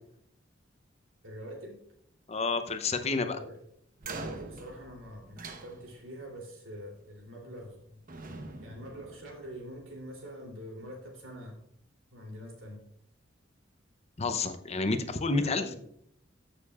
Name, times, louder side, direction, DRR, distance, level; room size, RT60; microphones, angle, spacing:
voice 1, 1.2-1.8 3.3-3.6 4.0-8.0 8.6-11.6 12.1-12.8 15.3-15.8, equal, 85° right, 1 dB, 3.1 m, -45 dB
voice 2, 2.3-3.4 14.2-15.6, left 3 dB, 35° left, 9 dB, 0.7 m, -29 dB
sound 1, 4.0-6.3 7.4-7.8 8.1-9.8, right 3 dB, 45° right, 0.9 m, -44 dB
14.0 x 6.7 x 2.4 m, 0.71 s
head